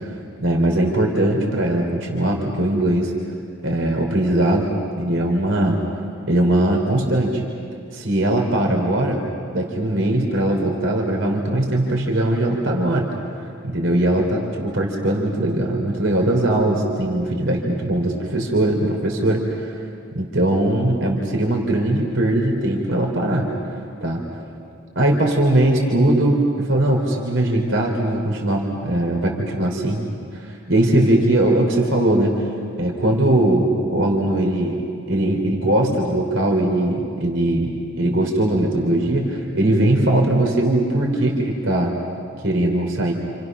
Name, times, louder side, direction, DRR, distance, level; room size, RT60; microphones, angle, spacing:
voice 1, 0.4-3.1 3.6-5.8 6.3-7.4 7.9-9.2 9.5-13.1 13.6-19.8 20.1-23.5 24.0-24.2 25.0-32.5 32.8-41.9 42.4-43.1, right 1 dB, 70° right, 0 dB, 3.6 m, -20 dB
29.0 x 28.5 x 6.2 m, 2.4 s
head